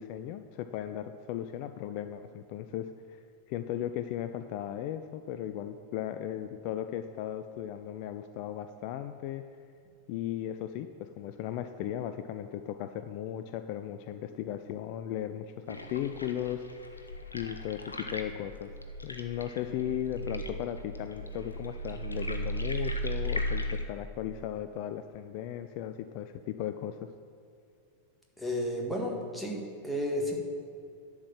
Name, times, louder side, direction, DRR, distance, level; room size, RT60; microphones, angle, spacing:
voice 1, 0.0-3.2 3.5-9.4 10.1-16.7 16.9-17.1 17.3-18.7 19.0-27.0, left 11 dB, 45° left, 9 dB, 0.4 m, -36 dB
sound 1, 15.7-23.8, equal, 80° left, 0.7 m, -36 dB
voice 2, 28.4-30.4, equal, ahead, -2 dB, 1.7 m, -32 dB
11.0 x 4.7 x 7.4 m, 2.4 s
figure-of-eight pair, 90°, 0 cm